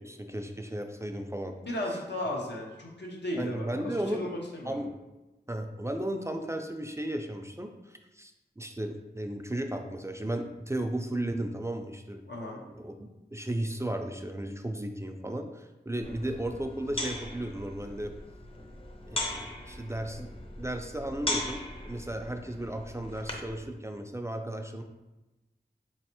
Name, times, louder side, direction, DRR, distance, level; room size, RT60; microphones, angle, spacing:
voice 1, 0.0-1.5 3.4-4.3 4.6-5.0 5.5-12.2 12.8-18.1 19.1-20.3 20.6-24.8, right 1 dB, 15° right, 5 dB, 0.3 m, -35 dB
voice 2, 1.6-4.8 12.3-12.6 16.0-16.3, left 1 dB, 80° left, -1 dB, 0.8 m, -36 dB
sound 1, 16.0-23.6, left 1 dB, 30° left, 0.6 m, -38 dB
4.1 x 3.1 x 2.9 m, 1.0 s
wide cardioid pair, 45°, 18 cm